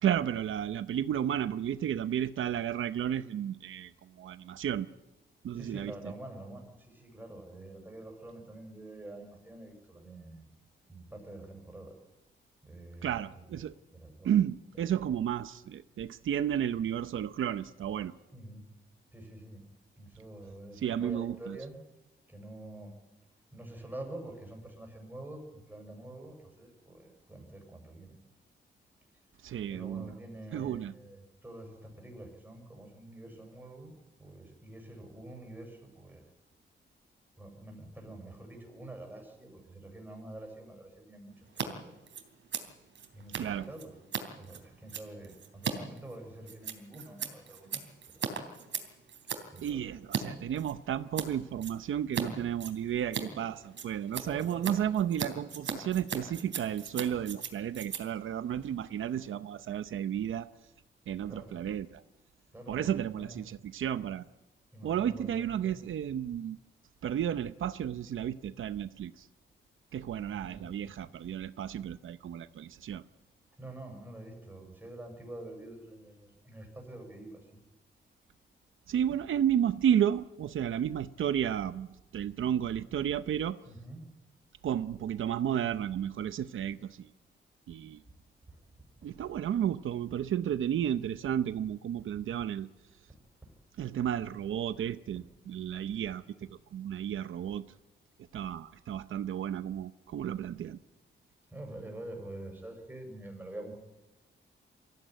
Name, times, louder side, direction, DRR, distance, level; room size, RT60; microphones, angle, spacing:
voice 1, 0.0-4.9 5.4-5.9 13.0-13.7 14.2-18.1 20.7-21.6 29.4-30.2 30.5-30.9 43.3-43.7 49.6-60.5 61.1-62.0 62.7-64.3 64.8-66.6 67.0-69.3 69.9-73.0 78.9-83.6 84.6-87.1 87.7-88.0 89.0-92.7 93.8-96.2 96.5-97.6 98.3-100.8, right 10 dB, 85° right, 12 dB, 0.7 m, -32 dB
voice 2, 5.5-10.5 10.9-11.9 12.6-13.6 13.9-14.3 18.3-18.6 19.1-19.6 20.0-21.8 22.3-22.9 23.5-28.1 29.7-33.9 34.2-36.2 37.4-41.8 43.1-43.9 44.4-47.8 48.1-48.4 49.5-49.8 54.2-54.7 61.3-61.7 62.5-63.4 64.7-65.8 70.3-71.1 73.6-77.6 83.7-84.0 88.5-88.6 93.4-93.5 101.5-103.8, right 1 dB, 10° right, 3 dB, 6.2 m, -47 dB
Scissors, 41.4-41.7 41.9-50.2 50.5-51.3 51.6-52.2 52.5-59.3, right 7 dB, 70° right, 3.3 m, -38 dB
24.5 x 16.0 x 9.2 m, 1.0 s
wide cardioid pair, 145°, 20 cm